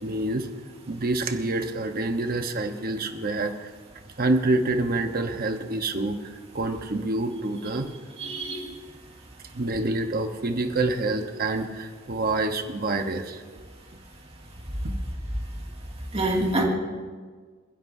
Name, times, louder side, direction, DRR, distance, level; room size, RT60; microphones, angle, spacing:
voice 1, 0.0-0.5 0.9-3.7 4.2-7.9 9.5-13.4 14.8-14.9, right 2 dB, 50° right, 6 dB, 1.0 m, -27 dB
voice 2, 8.2-8.8 16.1-16.6, right 1 dB, 30° right, -1 dB, 2.3 m, -26 dB
28.0 x 10.5 x 2.7 m, 1.5 s
head